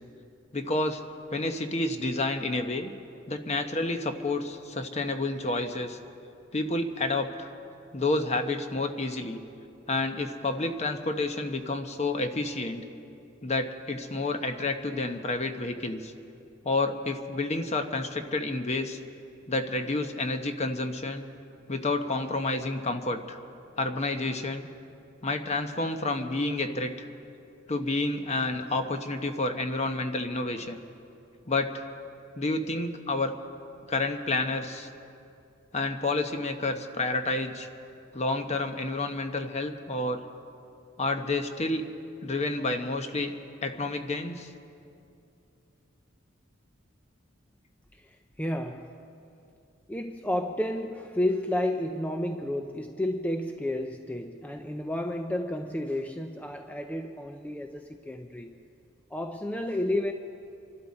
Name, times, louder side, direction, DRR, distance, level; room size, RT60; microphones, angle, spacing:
voice 1, 0.5-1.0 1.3-2.9 3.3-6.0 6.5-7.5 7.9-9.4 9.9-12.8 13.4-16.1 16.6-19.0 19.5-21.3 21.7-23.4 23.8-24.7 25.2-27.1 27.7-30.8 31.5-31.8 32.4-33.3 33.9-34.9 35.7-37.7 38.1-40.2 41.0-41.8 42.2-43.3 43.6-44.5, left 2 dB, 35° left, 7 dB, 0.9 m, -29 dB
voice 2, 47.9-49.0 49.9-58.6 59.1-60.1, left 1 dB, 10° left, 5 dB, 0.5 m, -31 dB
27.0 x 12.0 x 4.3 m, 2.6 s
head